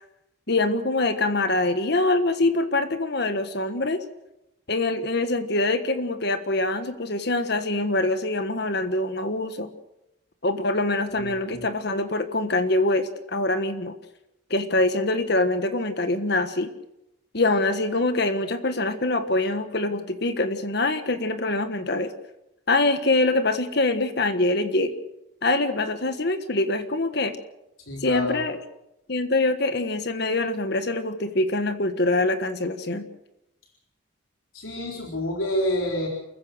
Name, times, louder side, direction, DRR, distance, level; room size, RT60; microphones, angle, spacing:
voice 1, 0.5-4.0 4.7-9.7 10.4-13.9 14.5-16.7 17.3-22.1 22.7-24.9 25.4-27.3 28.0-28.6 29.1-33.1, left 2 dB, 55° left, 9 dB, 1.5 m, -24 dB
voice 2, 11.1-11.6 27.8-28.4 34.5-36.1, left 1 dB, 90° left, -1 dB, 4.1 m, -28 dB
28.5 x 15.0 x 6.5 m, 0.88 s
head